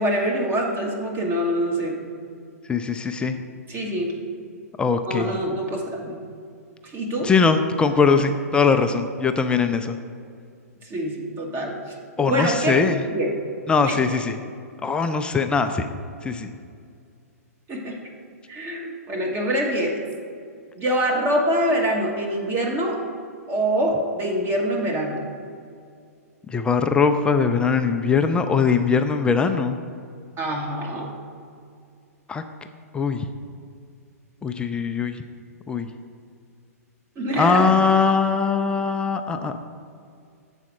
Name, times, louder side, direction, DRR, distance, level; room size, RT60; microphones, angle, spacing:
voice 1, 0.0-2.0 3.7-4.1 5.0-6.2 6.8-7.3 10.8-11.9 12.3-12.8 13.1-13.3 13.8-14.2 17.7-18.0 18.5-20.0 20.8-23.0 23.5-25.2 30.4-31.1 37.2-37.7, right 1 dB, 25° right, 0 dB, 1.0 m, -25 dB
voice 2, 2.7-3.4 4.8-5.3 7.2-10.0 12.2-13.0 13.7-14.4 14.8-15.9 16.2-16.5 26.5-29.8 32.3-32.4 32.9-33.3 34.4-35.2 35.7-35.9 37.3-39.6, left 5 dB, 10° left, 7 dB, 0.3 m, -21 dB
7.3 x 4.2 x 6.0 m, 2.3 s
hypercardioid pair, 120°, 9 cm